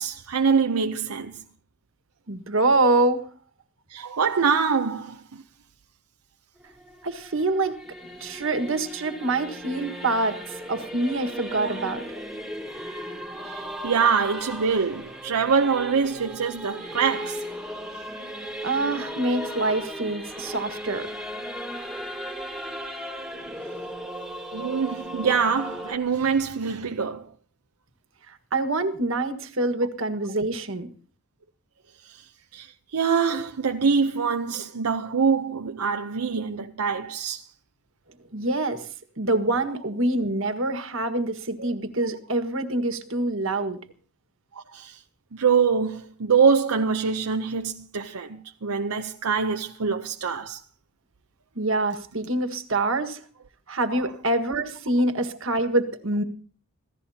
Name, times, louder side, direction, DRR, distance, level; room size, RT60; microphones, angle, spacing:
voice 1, 0.0-1.4 3.9-5.4 11.6-11.8 13.4-17.4 24.5-27.2 32.0-32.2 32.5-37.4 41.6-41.7 44.5-45.0 45.3-50.6 52.8-52.9 53.9-54.0, right 5 dB, 80° right, 0.7 m, -24 dB
voice 2, 2.3-3.3 7.0-7.8 8.2-12.0 18.6-21.1 28.3-30.9 38.3-38.9 39.2-43.8 51.5-53.2 53.7-56.2, right 2 dB, 60° right, 1.6 m, -25 dB
Singing / Musical instrument, 6.6-25.9, equal, ahead, 1.7 m, -36 dB
25.5 x 16.5 x 2.8 m
head